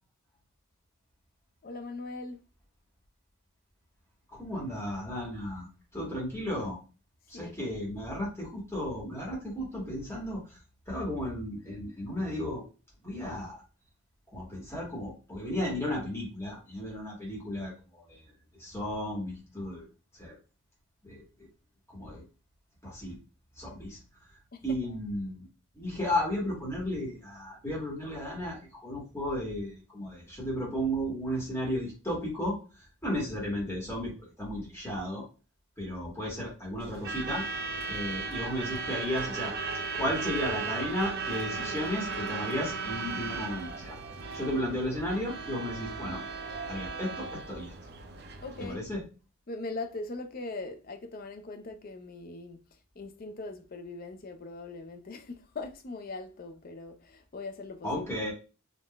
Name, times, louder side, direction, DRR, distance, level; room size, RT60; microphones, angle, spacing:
voice 1, 1.6-2.5 7.3-7.8 24.5-25.0 48.4-48.8 49.5-58.1, left 3 dB, 40° left, 0.5 m, -41 dB
voice 2, 4.3-5.7 5.9-6.8 7.3-10.4 10.9-12.6 13.0-13.6 14.3-18.2 18.6-19.8 20.2-20.4 21.0-21.5 21.9-22.2 22.8-23.2 23.6-24.0 24.6-25.5 25.8-32.6 33.0-35.2 35.8-37.5 37.9-39.5 39.9-44.0 44.3-46.2 46.7-47.7 48.6-49.0 57.8-58.3, equal, 10° left, 1.2 m, -34 dB
Truck / Alarm, 36.8-48.7, right 4 dB, 50° right, 0.4 m, -36 dB
3.6 x 2.4 x 2.2 m
head